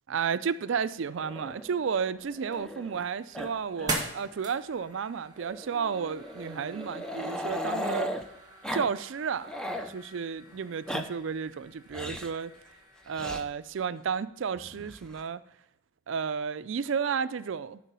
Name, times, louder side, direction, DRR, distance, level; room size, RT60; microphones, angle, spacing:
voice 1, 0.1-8.1 8.7-9.5 9.9-12.5 13.1-15.4 16.1-17.8, right 6 dB, 65° right, 14 dB, 0.4 m, -32 dB
Growling, 1.2-3.1 3.3-3.5 3.8-3.9 4.3-4.4 5.4-8.2 8.6-8.9 9.2-9.9 10.6-11.0 11.9-12.4 13.1-13.4 14.6-15.2, equal, 5° left, 0.6 m, -37 dB
sound 1, 2.2-13.2, right 2 dB, 20° right, 1.9 m, -43 dB
11.5 x 4.5 x 5.5 m, 0.82 s
head